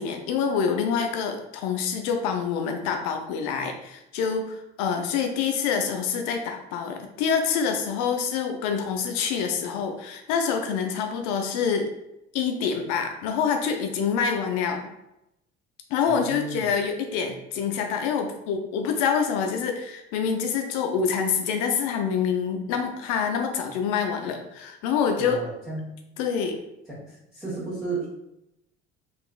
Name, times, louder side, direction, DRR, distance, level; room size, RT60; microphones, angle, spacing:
voice 1, 0.0-11.9 12.3-14.9 15.9-25.4 26.2-26.6, left 6 dB, 60° left, 4 dB, 0.6 m, -26 dB
voice 2, 16.1-16.7 25.2-26.0 26.9-28.1, right 3 dB, ahead, -10 dB, 1.2 m, -34 dB
3.6 x 2.5 x 2.3 m, 0.86 s
figure-of-eight pair, 60°, 32 cm